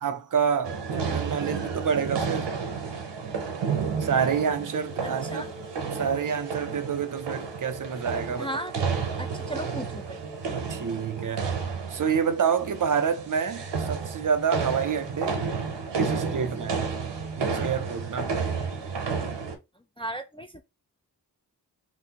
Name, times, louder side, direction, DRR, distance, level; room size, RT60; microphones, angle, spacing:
voice 1, 0.0-2.5 4.0-5.4 5.9-8.5 10.7-11.6 11.9-15.4 15.9-16.9 17.4-18.3, right 7 dB, 50° right, 0.5 m, -28 dB
sound 1, 0.6-19.6, right 5 dB, 90° right, 0.7 m, -31 dB
sound 2, 3.7-11.7, equal, 30° left, 1.3 m, -45 dB
voice 2, 5.0-5.5 8.4-8.7 9.2-10.2 20.0-20.6, right 1 dB, 15° left, 0.3 m, -35 dB
3.1 x 2.6 x 2.8 m
cardioid pair, 55°, 41 cm